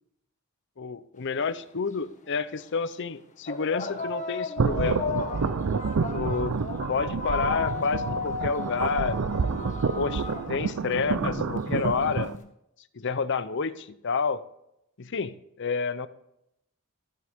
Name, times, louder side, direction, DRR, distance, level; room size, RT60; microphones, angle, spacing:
voice 1, 0.8-5.3 6.1-6.6 6.9-12.5 12.9-14.4 15.0-16.1, left 5 dB, 60° left, 14 dB, 0.7 m, -30 dB
sound 1, 1.4-1.5 2.4-2.6 3.5-12.4, left 3 dB, 35° left, 1.6 m, -34 dB
sound 2, 4.6-12.4, right 5 dB, 80° right, 0.5 m, -29 dB
14.5 x 12.5 x 3.6 m, 0.80 s
head